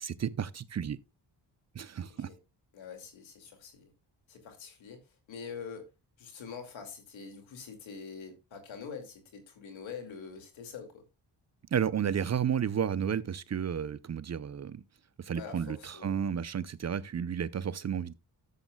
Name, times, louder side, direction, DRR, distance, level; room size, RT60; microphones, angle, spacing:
voice 1, 0.0-1.0 1.7-2.3 11.7-14.8 15.2-18.1, right 8 dB, 35° right, 0.6 m, -32 dB
voice 2, 2.7-3.9 4.3-5.0 5.3-5.9 6.2-11.0 15.3-16.2, left 6 dB, 90° left, 2.5 m, -45 dB
13.0 x 7.2 x 2.3 m
cardioid pair, 75°, 45 cm